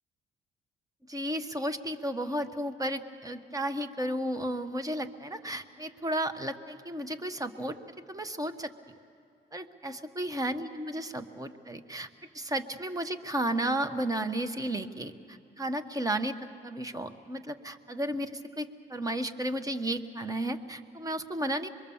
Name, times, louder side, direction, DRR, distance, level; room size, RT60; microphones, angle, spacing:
voice 1, 1.1-7.8 8.1-8.7 9.5-12.1 12.3-16.4 16.6-21.7, right 1 dB, 15° right, 9 dB, 1.1 m, -33 dB
25.5 x 22.0 x 7.1 m, 2.5 s
cardioid pair, 90°, 20 cm